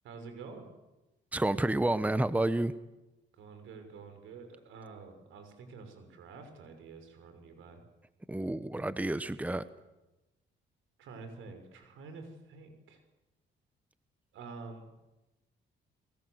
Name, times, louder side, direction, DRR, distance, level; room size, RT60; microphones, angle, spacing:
voice 1, 0.0-0.7 3.3-7.8 11.0-13.0 14.3-14.9, right 4 dB, 85° right, 7 dB, 6.1 m, -48 dB
voice 2, 1.3-2.7 8.3-9.6, right 1 dB, 5° right, 13 dB, 1.1 m, -29 dB
29.5 x 22.0 x 8.1 m, 1.0 s
cardioid pair, 90°, 20 cm